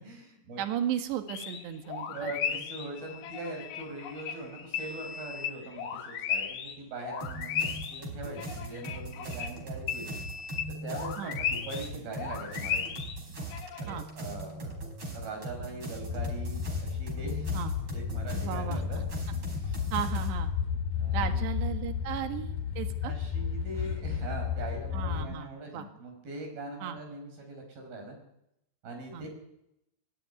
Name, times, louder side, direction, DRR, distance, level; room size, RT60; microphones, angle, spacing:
voice 1, 0.0-0.7 2.1-10.2 10.5-10.6 10.8-12.8 13.8-14.8 15.1-17.6 17.9-19.0 19.6-19.8 20.9-21.5 23.0-28.2 28.8-29.3, right 2 dB, 60° right, 3 dB, 7.0 m, -41 dB
voice 2, 0.6-2.6 11.2-11.3 13.9-14.1 17.5-17.7 18.3-18.8 19.9-20.5 21.1-23.1 24.9-25.9 26.8-27.0 29.1-29.3, right 9 dB, 80° right, 6 dB, 3.9 m, -35 dB
sound 1, 1.3-6.7 7.0-9.6 9.9-11.9 12.2-14.0, left 7 dB, 80° left, 4.3 m, -36 dB
sound 2, 7.2-20.3, right 1 dB, 30° right, 5.5 m, -40 dB
sound 3, 16.1-25.3, left 7 dB, 60° left, 3.2 m, -32 dB
23.0 x 19.5 x 9.5 m, 0.84 s
omnidirectional pair, 4.9 m